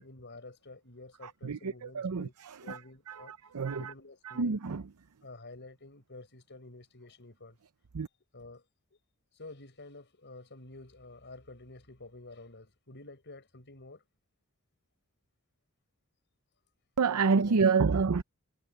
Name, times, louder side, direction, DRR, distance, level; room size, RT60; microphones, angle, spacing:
voice 1, 0.0-2.3 2.6-3.3 3.8-4.6 5.2-7.6 8.3-8.6 9.3-14.0 17.1-17.9, left 2 dB, 50° left, 6.5 m, -50 dB
voice 2, 1.4-2.8 3.1-3.9 4.2-4.8 7.9-8.1 17.0-18.2, right 5 dB, 85° right, 0.6 m, -28 dB
head